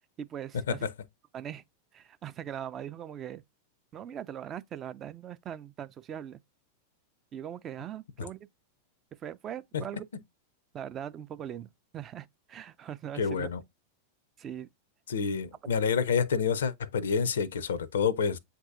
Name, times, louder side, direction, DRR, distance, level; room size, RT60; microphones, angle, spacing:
voice 1, 0.2-0.9 1.3-1.6 1.9-3.4 3.9-6.4 7.3-8.4 9.2-10.0 10.7-13.5 14.4-14.7, right 9 dB, 30° right, 0.3 m, -40 dB
voice 2, 13.1-13.6 15.1-18.4, left 6 dB, 65° left, 0.4 m, -28 dB
7.7 x 2.6 x 2.5 m
figure-of-eight pair, 90°, 0 cm